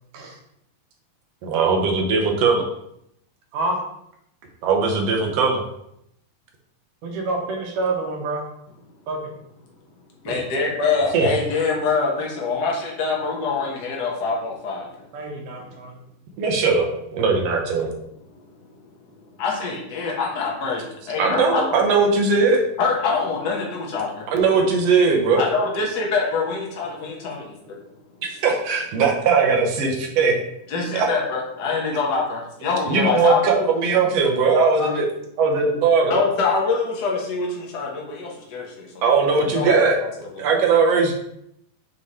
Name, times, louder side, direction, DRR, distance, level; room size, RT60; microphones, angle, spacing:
voice 1, 1.4-2.6 4.6-5.6 10.3-10.4 11.1-11.3 16.4-17.9 21.2-22.6 24.3-25.4 28.2-30.3 30.9-31.1 32.9-35.1 35.4-36.2 39.0-40.0 40.4-41.1, right 4 dB, 65° right, 1 dB, 1.8 m, -19 dB
voice 2, 7.0-8.4 9.1-9.2 15.1-15.9, right 2 dB, 90° right, 0 dB, 2.8 m, -27 dB
voice 3, 10.2-14.9 18.3-18.8 19.4-21.8 22.8-24.3 25.3-27.8 30.7-33.7 34.8-34.9 36.0-39.1 39.5-40.4, left 4 dB, 75° left, -2 dB, 0.9 m, -25 dB
7.3 x 3.2 x 4.1 m, 0.76 s
omnidirectional pair, 3.5 m